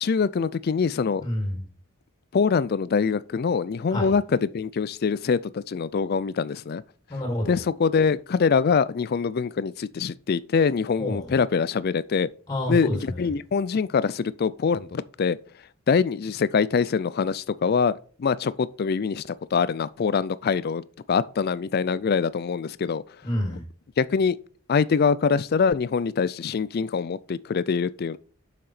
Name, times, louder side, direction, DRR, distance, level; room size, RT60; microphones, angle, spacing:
voice 1, 0.0-1.2 2.3-6.8 7.5-12.3 12.7-15.4 15.9-23.0 24.0-24.4 24.7-28.2, left 5 dB, 50° left, 0.4 m, -24 dB
voice 2, 1.1-1.6 3.9-4.1 7.1-7.6 11.0-11.3 12.5-13.3 23.2-23.6, left 1 dB, 20° left, 2.9 m, -28 dB
6.9 x 5.8 x 4.9 m
head